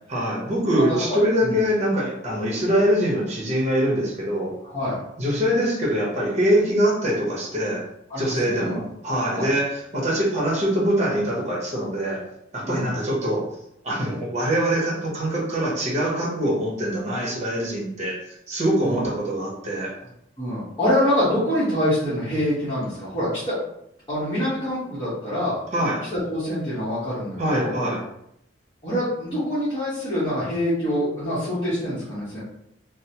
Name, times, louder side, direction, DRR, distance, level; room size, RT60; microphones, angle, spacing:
voice 1, 0.1-4.6 5.2-7.8 8.2-12.2 12.5-13.5 13.8-19.9 25.7-26.1 27.4-28.0, equal, 35° right, -3 dB, 0.8 m, -23 dB
voice 2, 0.7-1.5 4.6-5.0 8.1-8.8 9.3-9.5 12.7-12.9 18.8-19.1 20.4-23.6 24.1-25.6 26.1-27.7 28.8-32.4, equal, 25° left, -12 dB, 1.0 m, -25 dB
2.9 x 2.0 x 2.8 m, 0.76 s
head